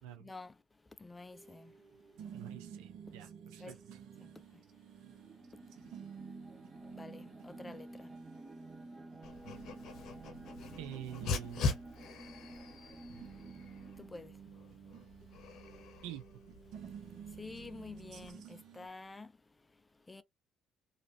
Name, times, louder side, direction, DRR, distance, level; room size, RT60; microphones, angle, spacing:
voice 1, 0.2-0.5 1.0-1.7 3.6-3.7 4.2-4.6 6.9-8.1 14.0-14.3 17.4-19.3 20.1-20.2, left 3 dB, 20° left, 0.5 m, -49 dB
sound 1, 1.3-18.9, right 8 dB, 75° right, 1.0 m, -53 dB
voice 2, 2.3-3.7 4.1-4.2 10.8-11.7 16.0-16.2, right 11 dB, 90° right, 0.8 m, -46 dB
sound 2, 5.1-14.3, right 2 dB, 25° right, 0.8 m, -51 dB
Dog, 9.2-18.3, left 4 dB, 65° left, 0.9 m, -42 dB
3.2 x 2.8 x 2.8 m
supercardioid pair, 75°, 0 cm